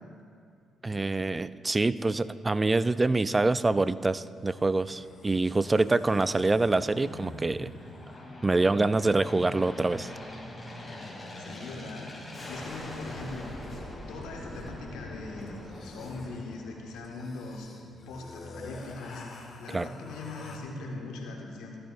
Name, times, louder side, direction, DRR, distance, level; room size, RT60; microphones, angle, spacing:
voice 1, 0.8-7.7 8.4-10.1 19.7-19.9, right 3 dB, 25° right, 15 dB, 0.3 m, -25 dB
sound 1, 3.3-3.4 4.5-8.0 11.5-11.6 12.4-12.8 13.1-13.2 13.4-14.9 15.4-20.6, left 2 dB, 60° left, 1.4 m, -48 dB
Aircraft, 4.7-17.3, left 1 dB, 20° left, 2.7 m, -44 dB
voice 2, 11.4-13.8 14.1-17.7 18.1-21.8, left 2 dB, 90° left, -1 dB, 1.6 m, -41 dB
14.5 x 12.0 x 2.5 m, 2.3 s
supercardioid pair, 65°, 0 cm